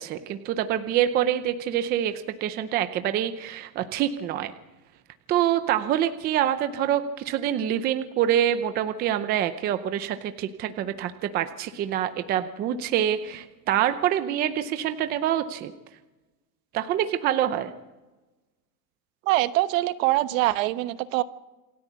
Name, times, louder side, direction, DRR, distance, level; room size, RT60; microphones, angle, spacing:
voice 1, 0.0-4.5 5.3-15.7 16.7-17.7, right 11 dB, 20° right, 10 dB, 0.6 m, -26 dB
voice 2, 19.2-21.2, right 17 dB, 55° right, 13 dB, 1.1 m, -23 dB
27.5 x 13.0 x 8.2 m, 1.1 s
supercardioid pair, 165°, 47 cm